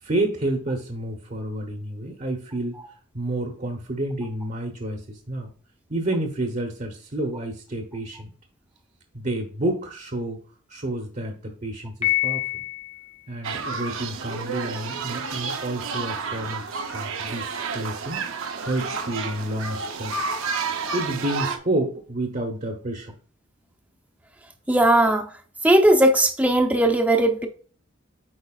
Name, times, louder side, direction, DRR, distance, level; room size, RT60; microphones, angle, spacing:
voice 1, 0.0-2.8 3.1-5.5 5.9-8.3 9.1-10.4 10.7-12.4 13.3-17.5 17.7-18.2 18.6-20.4 20.9-23.2, right 1 dB, 40° right, 2 dB, 0.9 m, -29 dB
Piano, 12.0-13.1, left 20 dB, 30° left, 1.0 m, -25 dB
sound 1, 13.4-21.6, right 5 dB, 70° right, 0.7 m, -30 dB
voice 2, 24.7-25.3 25.6-27.5, right 1 dB, 5° right, 4 dB, 0.6 m, -18 dB
8.7 x 4.5 x 2.4 m, 0.42 s
head